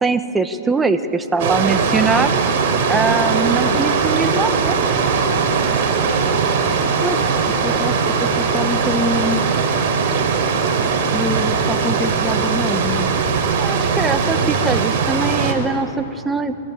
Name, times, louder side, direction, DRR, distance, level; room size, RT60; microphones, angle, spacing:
voice 1, 0.0-2.3 2.9-4.8 13.6-16.5, right 4 dB, 10° right, 9 dB, 1.4 m, -21 dB
sound 1, 1.4-15.5, right 5 dB, 50° right, 4.4 m, -19 dB
voice 2, 7.0-9.4 11.0-13.1, left 2 dB, 5° left, 5 dB, 1.4 m, -26 dB
28.5 x 23.0 x 8.1 m, 2.8 s
hypercardioid pair, 120°, 0 cm